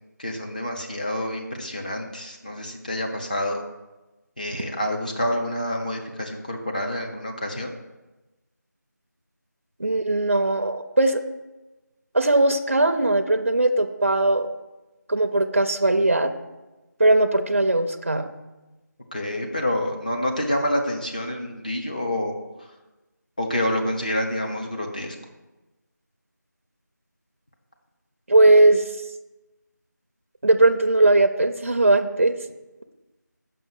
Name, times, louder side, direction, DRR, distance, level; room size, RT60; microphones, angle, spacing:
voice 1, 0.2-3.6 4.4-7.7 19.1-22.3 23.4-25.1, left 1 dB, 25° left, 1 dB, 0.8 m, -27 dB
voice 2, 9.8-11.2 12.1-14.5 15.1-16.3 17.0-18.3 28.3-28.8 30.4-32.3, right 2 dB, 40° right, 6 dB, 0.5 m, -19 dB
6.6 x 5.3 x 7.0 m, 1.1 s
figure-of-eight pair, 175°, 10 cm